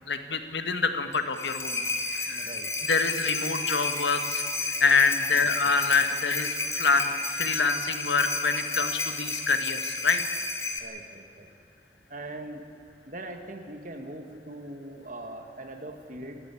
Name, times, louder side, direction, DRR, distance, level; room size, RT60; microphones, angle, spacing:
voice 1, 0.1-1.8 2.1-2.5 2.8-10.2, left 4 dB, 80° left, 7 dB, 1.9 m, -26 dB
sound 1, 1.1-10.8, left 3 dB, 15° left, 1.9 m, -32 dB
voice 2, 2.3-2.7 10.8-11.5 12.1-12.6 13.1-16.4, right 1 dB, 45° right, 5 dB, 2.3 m, -41 dB
28.5 x 14.0 x 8.8 m, 2.6 s
head